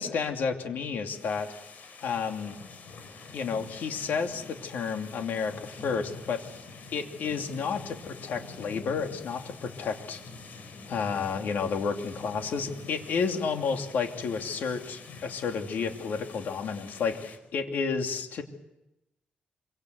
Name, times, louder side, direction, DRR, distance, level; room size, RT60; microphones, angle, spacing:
voice 1, 0.0-1.5 2.0-2.6 3.3-6.4 6.9-10.2 10.9-18.4, left 5 dB, 80° left, 4 dB, 2.8 m, -31 dB
sound 1, 1.1-17.4, left 4 dB, 60° left, 4.6 m, -46 dB
26.0 x 25.0 x 8.0 m, 0.91 s
cardioid pair, 110°, 3 cm